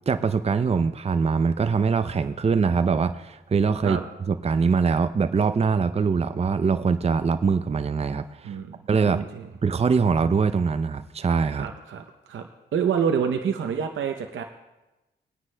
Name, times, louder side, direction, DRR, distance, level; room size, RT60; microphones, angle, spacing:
voice 1, 0.1-4.0 4.3-8.6 8.9-9.2 9.6-11.7, right 5 dB, 30° right, 10 dB, 0.5 m, -23 dB
voice 2, 8.4-8.8 9.0-9.5 11.5-12.4 12.7-14.4, right 7 dB, 75° right, 4 dB, 0.7 m, -27 dB
20.0 x 9.5 x 2.2 m, 1.0 s
cardioid pair, 50°, 20 cm